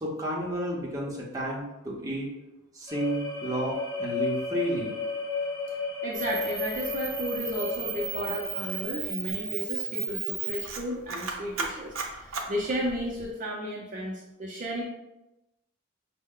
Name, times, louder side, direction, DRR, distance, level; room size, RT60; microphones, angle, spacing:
voice 1, 0.0-2.3 2.7-5.0, right 1 dB, 15° right, -3 dB, 0.8 m, -31 dB
sound 1, 2.9-8.9, left 3 dB, 20° left, 0.6 m, -33 dB
voice 2, 6.0-14.8, equal, 40° right, -3 dB, 0.6 m, -33 dB
Camera, 6.1-13.3, right 6 dB, 80° right, 0.7 m, -35 dB
5.3 x 2.1 x 3.7 m, 0.95 s
head